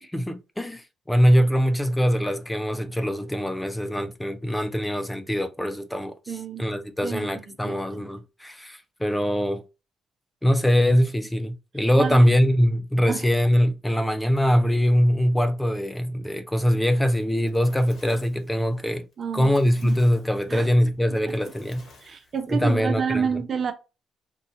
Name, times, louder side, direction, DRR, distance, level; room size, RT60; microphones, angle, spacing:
voice 1, 0.0-9.6 10.4-19.1 19.3-21.8 22.5-23.4, equal, 10° left, 0.5 m, -22 dB
voice 2, 6.3-6.7 7.0-7.3 7.6-8.1 12.0-12.3 13.1-13.3 19.2-19.5 19.8-20.0 20.5-20.7 22.0-23.7, right 6 dB, 50° right, 0.7 m, -29 dB
Fire, 17.1-22.6, left 3 dB, 65° left, 1.9 m, -53 dB
3.8 x 2.7 x 2.7 m
cardioid pair, 90°, 0 cm